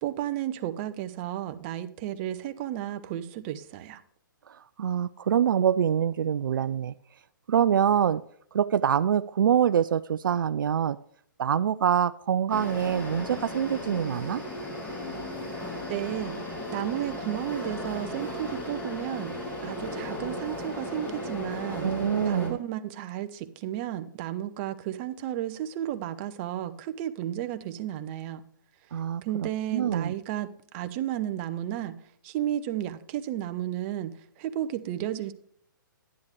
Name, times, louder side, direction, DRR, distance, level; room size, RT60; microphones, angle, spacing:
voice 1, 0.0-4.0 15.9-16.4 16.7-19.3 19.6-21.9 22.2-28.4 29.2-32.0 32.2-35.3, right 12 dB, 35° right, 0.7 m, -33 dB
voice 2, 4.5-6.9 7.5-8.2 8.5-11.0 11.4-14.4 21.8-22.6 28.9-30.1, right 9 dB, 75° right, 0.4 m, -25 dB
sound 1, 12.5-22.5, left 1 dB, 15° left, 2.5 m, -36 dB
10.5 x 9.8 x 3.2 m
hypercardioid pair, 140°, 11 cm